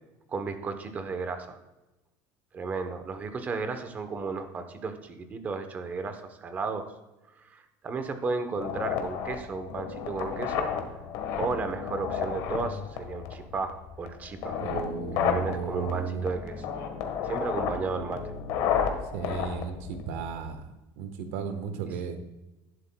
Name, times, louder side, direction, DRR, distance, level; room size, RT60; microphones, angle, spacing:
voice 1, 0.3-1.6 2.5-6.9 7.4-11.1 11.4-14.6 15.2-16.7 17.2-18.2, right 4 dB, 20° right, 8 dB, 0.8 m, -34 dB
sound 1, 8.6-20.5, left 7 dB, 60° left, 1.3 m, -32 dB
voice 2, 14.6-16.3 19.1-22.2, right 7 dB, 90° right, 8 dB, 1.2 m, -34 dB
11.5 x 11.0 x 2.2 m, 1.0 s
cardioid pair, 165°, 7 cm